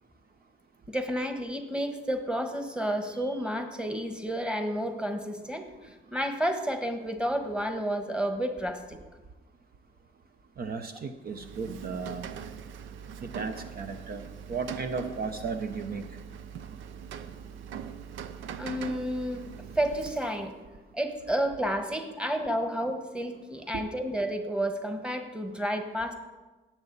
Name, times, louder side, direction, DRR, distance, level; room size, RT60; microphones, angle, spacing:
voice 1, 0.9-9.0 18.6-19.5 19.7-20.5 20.9-26.1, equal, 5° right, 6 dB, 1.4 m, -31 dB
voice 2, 10.6-12.3 13.2-16.0 23.7-23.9, right 4 dB, 50° right, 7 dB, 0.8 m, -35 dB
Rain, 11.3-20.5, right 7 dB, 75° right, 0.6 m, -42 dB
17.5 x 7.2 x 4.1 m, 1.2 s
cardioid pair, 90°, 20 cm